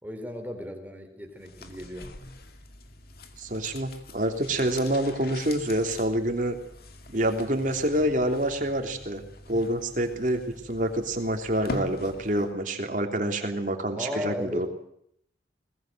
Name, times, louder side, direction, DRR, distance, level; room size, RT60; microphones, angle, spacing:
voice 1, 0.0-2.1 14.0-14.7, left 1 dB, 10° right, 3 dB, 3.9 m, -35 dB
sound 1, 1.4-12.6 12.9-13.0, left 1 dB, 55° left, 2.3 m, -43 dB
voice 2, 3.4-6.6 7.1-9.2 9.5-14.7, right 1 dB, 45° right, 5 dB, 3.1 m, -27 dB
21.5 x 20.0 x 7.7 m, 0.70 s
head